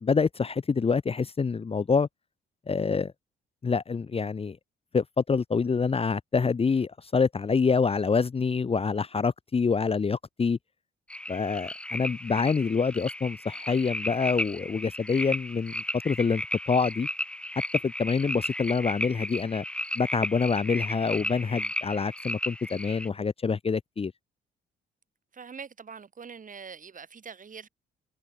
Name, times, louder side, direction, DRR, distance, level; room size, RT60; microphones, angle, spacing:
voice 1, 0.0-2.1 2.7-3.1 3.6-4.6 4.9-10.6 11.3-17.1 17.8-19.6 19.9-24.1, left 5 dB, 30° left, 1.0 m, -26 dB
sound 1, 11.1-23.1, left 1 dB, 5° left, 1.1 m, -34 dB
voice 2, 25.3-27.7, right 6 dB, 40° right, 6.7 m, -43 dB
cardioid pair, 90°, 20 cm